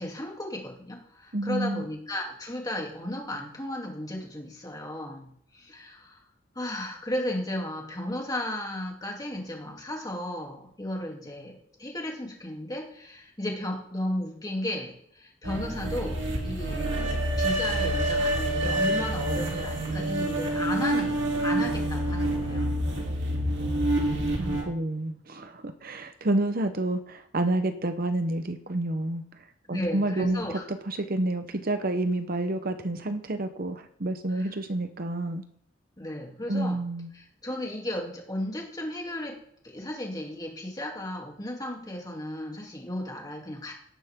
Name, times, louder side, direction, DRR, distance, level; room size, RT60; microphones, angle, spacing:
voice 1, 0.0-6.2 6.5-22.7 29.7-30.6 34.3-34.5 36.0-36.8 37.1-39.4 39.6-43.7, left 1 dB, 20° left, -1 dB, 2.9 m, -34 dB
voice 2, 1.3-1.9 24.4-29.2 29.7-35.4 36.5-37.1, right 1 dB, 50° right, 8 dB, 0.9 m, -29 dB
sound 1, 15.4-24.6, right 1 dB, 70° right, 3.0 m, -27 dB
17.0 x 10.5 x 3.7 m, 0.68 s
head